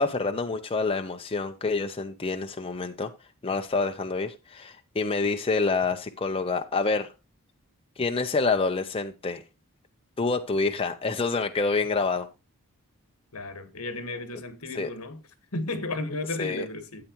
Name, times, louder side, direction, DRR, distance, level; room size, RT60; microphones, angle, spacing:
voice 1, 0.0-3.1 3.4-7.1 8.0-9.4 10.2-12.3 14.8-14.9 16.4-16.7, left 3 dB, 25° left, 0.7 m, -27 dB
voice 2, 13.3-15.2 15.5-17.0, left 2 dB, 70° left, 1.5 m, -33 dB
12.5 x 9.0 x 3.0 m
head